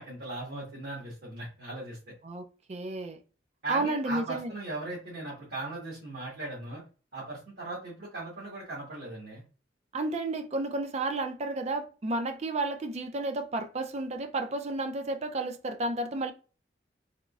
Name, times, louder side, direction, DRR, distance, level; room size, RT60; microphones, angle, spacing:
voice 1, 0.0-2.0 3.6-6.8 7.1-9.4, right 2 dB, 60° right, 1.4 m, -38 dB
voice 2, 2.2-3.2 3.7-4.5 9.9-16.3, right 2 dB, 40° right, 0.4 m, -32 dB
3.6 x 3.0 x 2.4 m
head